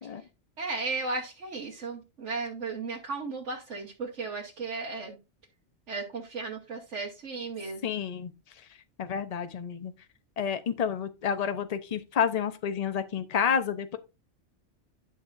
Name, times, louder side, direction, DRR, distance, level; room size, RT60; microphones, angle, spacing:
voice 1, 0.6-5.2 5.9-7.8, right 3 dB, 85° right, 1.5 m, -35 dB
voice 2, 7.8-8.3 9.0-9.9 10.4-14.0, left 7 dB, 40° left, 0.7 m, -29 dB
10.5 x 6.2 x 2.6 m
omnidirectional pair, 1.2 m